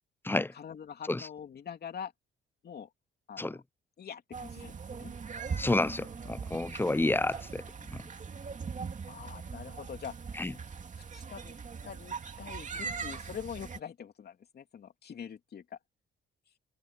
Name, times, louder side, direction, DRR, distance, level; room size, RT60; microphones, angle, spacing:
voice 1, 0.5-2.1 2.6-2.9 3.3-3.6 4.0-5.1 9.1-10.1 11.1-11.5 11.8-15.8, left 8 dB, 55° left, 3.0 m, -44 dB
sound 1, 4.3-13.8, right 5 dB, 40° right, 2.5 m, -41 dB
voice 2, 5.6-7.6 7.9-8.0 10.4-10.5, left 2 dB, 10° left, 0.6 m, -30 dB
cardioid pair, 90°, 20 cm